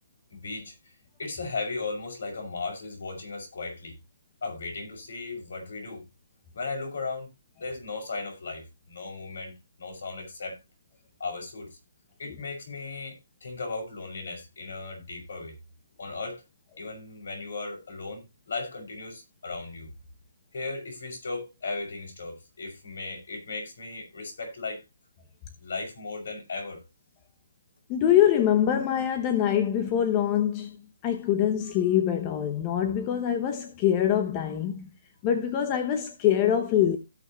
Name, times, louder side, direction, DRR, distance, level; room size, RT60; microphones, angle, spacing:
voice 1, 0.3-0.7 1.2-4.0 4.4-6.1 6.5-7.3 7.6-10.6 11.2-11.8 12.2-15.6 16.0-16.4 16.8-19.9 20.5-24.8 25.6-26.8, left 3 dB, 65° left, 6.1 m, -36 dB
voice 2, 27.9-30.8 31.0-34.9 35.2-37.0, left 10 dB, 20° left, 0.8 m, -24 dB
16.5 x 5.6 x 3.1 m
hypercardioid pair, 170°, 0 cm